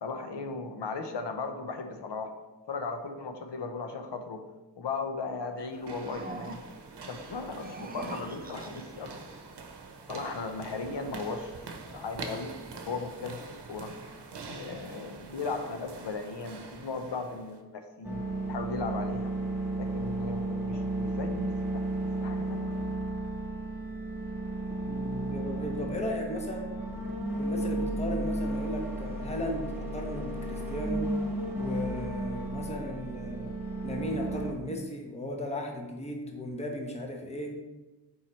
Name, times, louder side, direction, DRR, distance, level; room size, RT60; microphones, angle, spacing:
voice 1, 0.0-2.3 2.7-4.4 4.8-6.6 7.0-9.1 10.1-11.5 11.9-12.5 12.9-13.9 14.5-18.2 18.5-19.3 19.8-21.8 22.2-22.9, left 4 dB, 85° left, 6 dB, 0.8 m, -37 dB
sound 1, 5.6-6.9 7.5-9.1, right 3 dB, 20° right, 0.5 m, -44 dB
sound 2, 5.7-17.6, right 4 dB, 75° right, 0.8 m, -45 dB
sound 3, 18.0-34.5, right 2 dB, 5° right, 1.5 m, -33 dB
voice 2, 24.9-26.7 27.4-31.1 31.6-33.6 33.8-37.6, left 1 dB, 15° left, 1 dB, 0.9 m, -36 dB
7.2 x 4.7 x 3.1 m, 1.1 s
wide cardioid pair, 95°, 41 cm